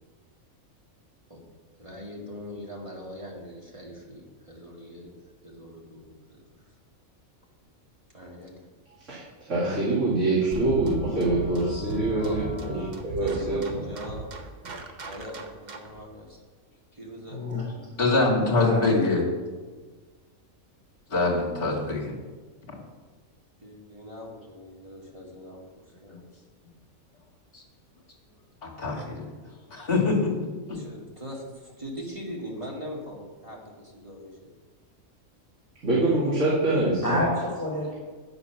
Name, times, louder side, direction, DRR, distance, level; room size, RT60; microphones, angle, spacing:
voice 1, 1.8-5.1 5.4-6.4 8.1-8.6 12.2-12.4 13.2-14.3 15.0-16.4 17.0-17.4 23.6-26.3 30.7-34.5, equal, 20° right, -3 dB, 1.9 m, -41 dB
voice 2, 9.1-13.8 35.8-37.3, right 2 dB, 60° right, -8 dB, 2.5 m, -25 dB
sound 1, 10.3-12.9, left 5 dB, 60° left, 1.8 m, -41 dB
sound 2, 10.5-16.0, right 3 dB, 40° right, 0.8 m, -36 dB
voice 3, 17.3-18.0 18.4-19.0 37.0-37.9, left 1 dB, 10° left, -5 dB, 2.9 m, -29 dB
voice 4, 18.0-19.2 21.1-22.2 22.7-22.8 26.1-26.2 27.5-27.6 28.6-29.3 29.7-30.8, left 3 dB, 40° left, -3 dB, 2.3 m, -24 dB
9.2 x 7.0 x 5.8 m, 1.4 s
omnidirectional pair, 1.5 m